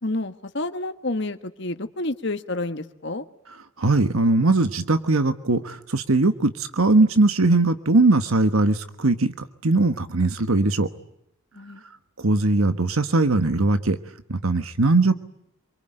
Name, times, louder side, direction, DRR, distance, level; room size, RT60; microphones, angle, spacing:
voice 1, 0.0-3.2 11.5-11.8, left 2 dB, 55° left, 9 dB, 1.6 m, -29 dB
voice 2, 3.8-9.3 9.6-10.9 12.2-14.0 14.3-15.1, right 2 dB, 90° right, 11 dB, 1.3 m, -20 dB
27.0 x 24.0 x 9.1 m, 0.76 s
head